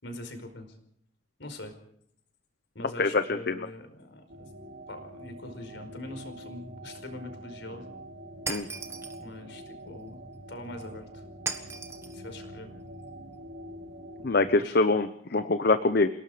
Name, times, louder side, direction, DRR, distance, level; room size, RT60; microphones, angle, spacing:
voice 1, 0.0-0.7 1.4-1.8 2.7-4.5 4.9-7.9 9.2-10.2 10.5-11.2 12.1-12.7 14.6-14.8, left 1 dB, 75° left, 7 dB, 5.0 m, -43 dB
voice 2, 3.0-3.6 8.5-8.7 14.2-16.1, left 3 dB, 55° left, 10 dB, 0.9 m, -24 dB
sound 1, 4.3-14.5, right 1 dB, 80° right, 3.4 m, -45 dB
Shatter, 8.5-9.2 11.5-12.2, right 4 dB, 15° right, 1.4 m, -36 dB
28.0 x 18.5 x 5.1 m, 0.68 s
head